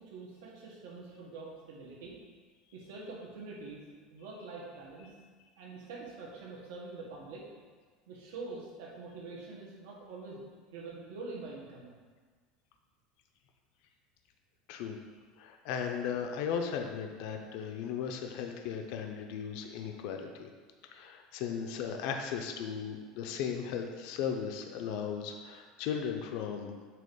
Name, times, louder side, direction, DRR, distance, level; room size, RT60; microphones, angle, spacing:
voice 1, 0.0-2.2 2.7-3.8 4.1-5.1 5.6-7.4 8.1-10.4 10.7-11.9, right 3 dB, 85° right, -3 dB, 1.7 m, -45 dB
voice 2, 15.4-20.5 20.9-26.7, left 7 dB, 55° left, 4 dB, 0.5 m, -36 dB
7.6 x 3.0 x 5.4 m, 1.5 s
cardioid pair, 175°, 0 cm